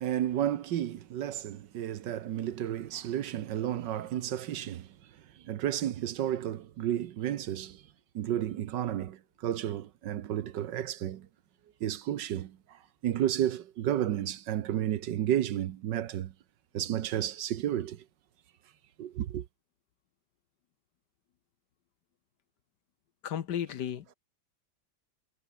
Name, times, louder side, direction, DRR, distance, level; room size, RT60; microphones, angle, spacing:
voice 1, 0.0-4.9 5.5-7.8 8.1-9.2 9.4-11.2 11.8-12.5 13.0-16.3 16.7-18.0 19.0-19.4, right 11 dB, 70° right, 1.5 m, -32 dB
voice 2, 23.2-24.1, left 9 dB, 65° left, 1.6 m, -34 dB
omnidirectional pair, 2.0 m